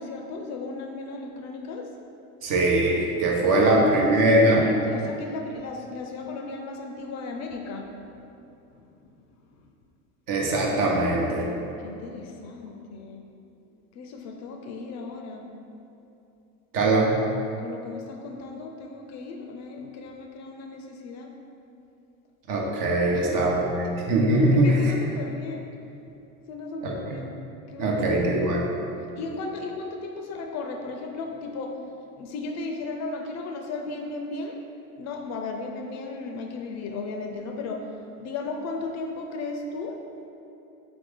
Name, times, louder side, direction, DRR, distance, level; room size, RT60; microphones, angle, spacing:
voice 1, 0.0-1.9 3.4-8.2 8.7-9.0 9.5-9.7 11.8-13.2 13.9-15.4 17.6-21.4 23.1-23.9 24.3-25.7 26.5-27.4 27.7-28.4 29.1-31.8 32.2-34.6 35.0-37.9 38.2-40.0, left 3 dB, 45° left, 3 dB, 0.4 m, -36 dB
voice 2, 2.4-4.6 10.3-11.5 16.7-17.2 22.5-24.9 26.8-26.9 27.8-28.7, right 1 dB, 50° right, -2 dB, 0.9 m, -21 dB
3.5 x 3.4 x 3.5 m, 2.8 s
hypercardioid pair, 85°, 41 cm